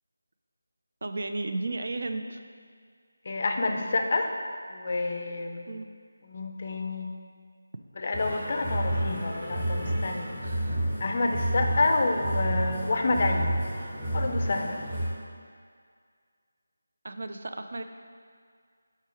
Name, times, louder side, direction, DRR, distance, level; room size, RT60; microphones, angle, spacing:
voice 1, 1.0-2.4 5.7-5.9 10.4-10.8 17.0-17.8, right 2 dB, 50° right, 7 dB, 0.4 m, -34 dB
voice 2, 3.3-4.3 4.7-5.7 6.2-7.1 8.0-10.3 11.0-13.6 14.1-14.8, left 3 dB, 30° left, 4 dB, 0.4 m, -28 dB
sound 1, 8.1-15.1, right 1 dB, 20° right, 1.0 m, -30 dB
5.5 x 4.7 x 5.0 m, 2.1 s
figure-of-eight pair, 175°, 0 cm